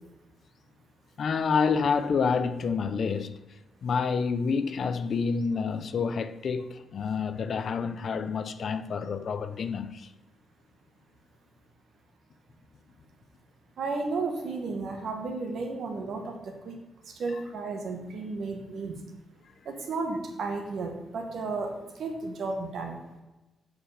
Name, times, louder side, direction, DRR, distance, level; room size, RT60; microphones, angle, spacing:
voice 1, 1.2-3.4 3.8-10.1 17.3-17.4, left 5 dB, 45° left, 0.4 m, -28 dB
voice 2, 13.8-16.4 16.6-16.8 17.2-19.0 19.6-22.9, right 3 dB, 55° right, 1.3 m, -33 dB
7.7 x 5.1 x 4.9 m
wide cardioid pair, 180°, 0 cm